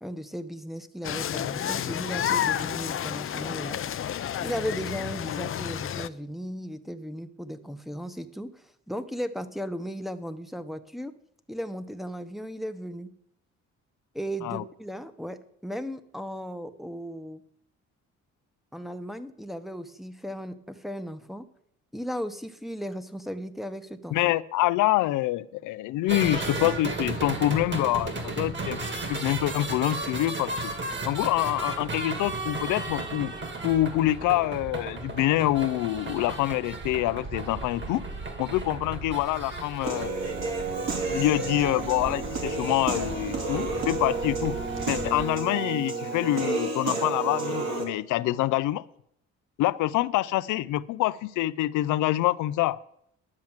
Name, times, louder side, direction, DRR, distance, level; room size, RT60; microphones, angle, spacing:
voice 1, 0.0-3.8 4.4-11.1 11.5-13.1 14.1-17.4 18.7-21.5 21.9-24.2, equal, ahead, 0.9 m, -36 dB
sound 1, 1.0-6.1, left 10 dB, 45° left, 0.6 m, -30 dB
voice 2, 24.1-28.8 29.1-30.7 31.0-33.3 33.6-38.0 38.4-40.1 41.1-44.6 44.9-48.8 49.6-52.8, left 15 dB, 90° left, 0.5 m, -26 dB
sound 2, 26.1-45.3, right 3 dB, 40° right, 2.6 m, -35 dB
Human voice / Piano, 39.8-47.8, right 3 dB, 60° right, 3.1 m, -31 dB
11.0 x 7.5 x 7.2 m
cardioid pair, 90°, 30 cm